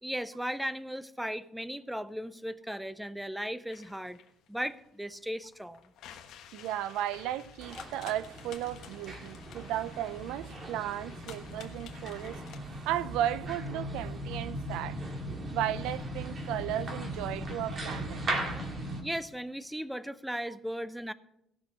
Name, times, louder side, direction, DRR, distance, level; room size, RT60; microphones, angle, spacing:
voice 1, 0.0-4.2 4.5-5.9 19.0-21.1, equal, 5° right, 0.4 m, -36 dB
sound 1, 3.7-12.6, left 9 dB, 65° left, 1.2 m, -52 dB
voice 2, 6.5-12.4 12.9-15.0 15.5-18.2, right 12 dB, 90° right, 0.4 m, -35 dB
sound 2, 7.6-19.0, right 1 dB, 30° right, 1.8 m, -38 dB
17.0 x 6.1 x 5.3 m
cardioid pair, 150°, 0 cm